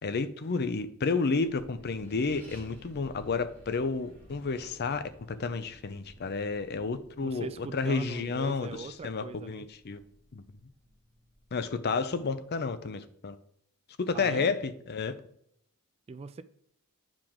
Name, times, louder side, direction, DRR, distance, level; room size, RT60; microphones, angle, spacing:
voice 1, 0.0-5.1 5.4-10.0 10.3-10.4 11.5-13.4 14.1-15.1, left 4 dB, 50° left, 0.5 m, -31 dB
Accelerating revving vroom, 1.3-12.3, equal, 10° left, 3.3 m, -55 dB
voice 2, 7.2-9.6 14.1-14.5 16.1-16.4, right 4 dB, 25° right, 0.3 m, -41 dB
8.9 x 4.9 x 3.7 m
head